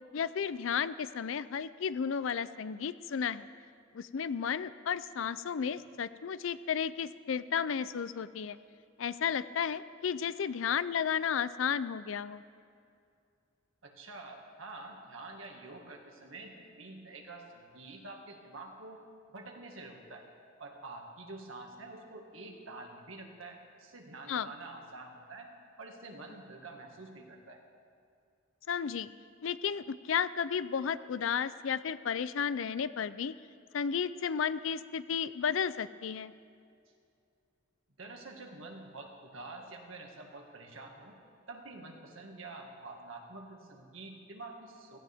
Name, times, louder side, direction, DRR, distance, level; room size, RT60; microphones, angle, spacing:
voice 1, 0.1-3.5 3.9-8.6 9.0-12.4 24.3-24.5 28.7-29.1 29.4-33.3 33.7-36.3, left 7 dB, 75° left, 16 dB, 0.4 m, -33 dB
voice 2, 13.8-19.0 19.3-20.3 20.6-25.5 25.8-27.6 38.0-41.2 41.5-45.0, right 2 dB, 80° right, 1 dB, 1.9 m, -47 dB
17.0 x 15.5 x 3.6 m, 2.4 s
head